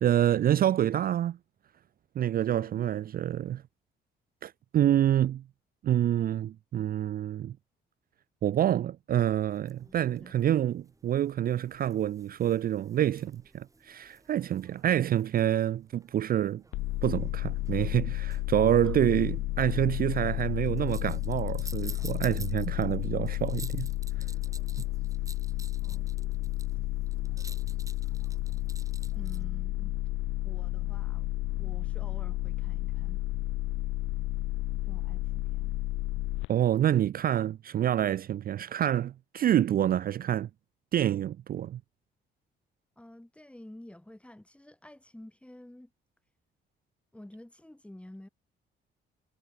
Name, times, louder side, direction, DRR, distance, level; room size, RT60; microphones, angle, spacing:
voice 1, 0.0-1.4 2.2-3.6 4.4-5.4 5.8-7.6 8.4-16.6 17.0-23.9 24.8-24.9 36.5-40.5 40.9-41.8, right 11 dB, 50° right, 0.4 m, -27 dB
sound 1, 9.5-29.4, right 3 dB, 15° right, 1.0 m, -52 dB
voice 2, 9.9-10.4 18.8-19.0 25.8-26.1 29.1-29.9 30.4-33.2 34.8-35.7 43.0-45.9 47.1-48.3, left 1 dB, 5° left, 1.3 m, -50 dB
sound 2, 16.7-36.5, left 19 dB, 90° left, 0.4 m, -32 dB
cardioid pair, 90°, 20 cm